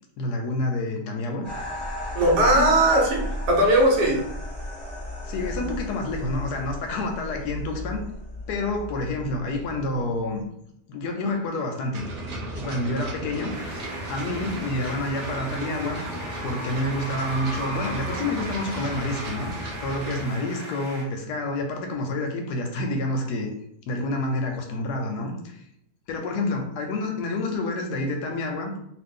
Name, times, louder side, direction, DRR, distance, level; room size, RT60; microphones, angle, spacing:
voice 1, 0.2-1.5 2.4-2.8 5.2-8.0 8.5-10.5 10.9-12.1 12.6-13.5 14.1-16.1 16.4-19.5 19.8-23.5 23.9-25.6 26.1-28.7, left 2 dB, 75° left, 3 dB, 1.1 m, -28 dB
sound 1, 1.4-10.4, left 1 dB, 10° right, 0.8 m, -35 dB
voice 2, 2.1-4.2, right 1 dB, 75° right, 0 dB, 1.3 m, -19 dB
sound 2, 11.9-20.2, right 1 dB, 90° right, 0.4 m, -35 dB
sound 3, 13.5-21.0, right 1 dB, 40° right, 1.0 m, -37 dB
2.7 x 2.5 x 3.5 m, 0.76 s
omnidirectional pair, 1.8 m